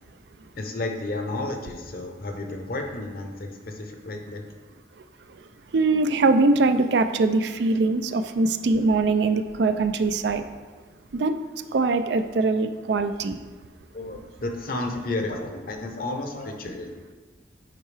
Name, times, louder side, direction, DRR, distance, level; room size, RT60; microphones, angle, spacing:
voice 1, 0.6-4.4 13.9-17.1, left 2 dB, 50° left, 3 dB, 0.8 m, -32 dB
voice 2, 5.7-10.4 11.1-11.3 11.7-13.4, right 3 dB, 65° right, 9 dB, 0.4 m, -22 dB
8.3 x 4.5 x 3.3 m, 1.4 s
head